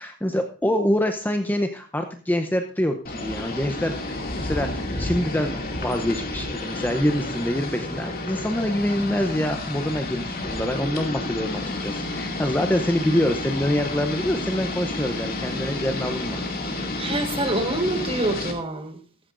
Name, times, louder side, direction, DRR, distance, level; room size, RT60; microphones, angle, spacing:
voice 1, 0.0-16.4, left 1 dB, 10° left, 6 dB, 0.7 m, -25 dB
sound 1, 3.0-18.5, left 2 dB, 40° left, 2.3 m, -30 dB
voice 2, 17.0-19.0, right 2 dB, 25° right, 6 dB, 1.4 m, -26 dB
15.0 x 13.0 x 2.5 m, 0.40 s
head